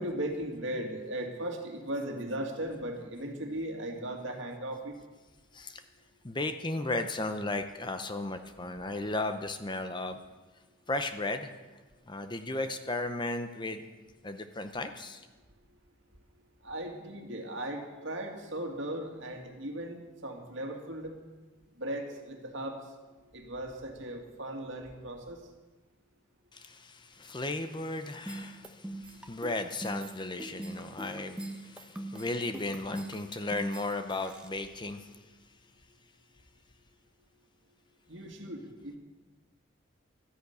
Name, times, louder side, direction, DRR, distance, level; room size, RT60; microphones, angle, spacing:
voice 1, 0.0-4.9 16.6-21.2 21.8-22.8 23.3-25.4 38.1-39.0, right 1 dB, 60° right, 3 dB, 2.2 m, -37 dB
voice 2, 6.2-10.2 10.9-11.5 12.1-13.9 14.2-15.2 26.5-35.1, left 2 dB, 20° left, 8 dB, 0.7 m, -35 dB
sound 1, 28.3-34.5, right 1 dB, 5° right, 0.9 m, -42 dB
13.0 x 10.5 x 8.1 m, 1.2 s
head